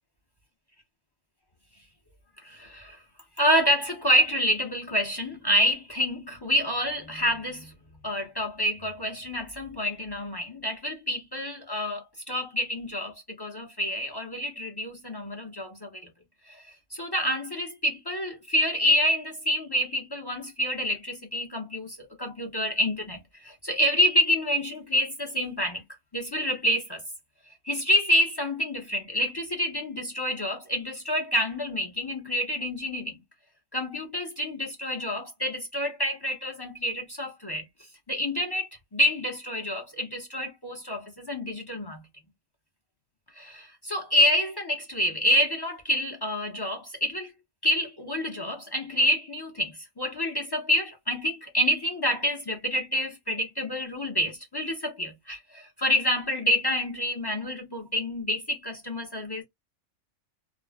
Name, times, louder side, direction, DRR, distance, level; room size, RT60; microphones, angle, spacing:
voice 1, 2.4-3.0 3.4-7.7 8.0-16.1 16.5-25.8 26.1-27.0 27.6-33.2 33.7-37.7 38.1-42.0 43.3-47.3 47.6-59.4, equal, 30° left, 0.5 m, -27 dB
2.5 x 2.0 x 3.3 m
omnidirectional pair, 1.5 m